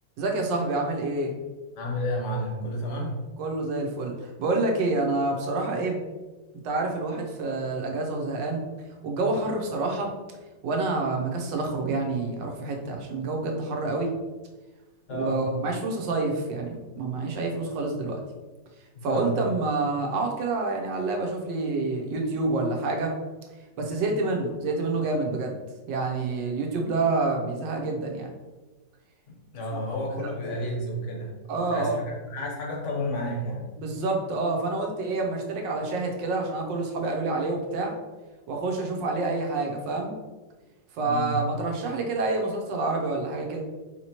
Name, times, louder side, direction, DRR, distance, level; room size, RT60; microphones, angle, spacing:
voice 1, 0.2-1.4 3.4-6.0 6.6-8.6 9.0-10.1 10.6-14.1 15.1-18.2 19.0-23.1 23.8-25.5 25.9-28.3 29.7-29.8 31.5-32.0 33.8-37.9 38.5-40.1 41.0-43.6, right 3 dB, 80° right, 1 dB, 1.4 m, -28 dB
voice 2, 1.8-3.2 15.1-15.5 19.0-19.3 29.5-33.6 41.0-41.4, equal, 50° left, -1 dB, 1.0 m, -31 dB
4.8 x 2.9 x 2.9 m, 1.2 s
omnidirectional pair, 2.0 m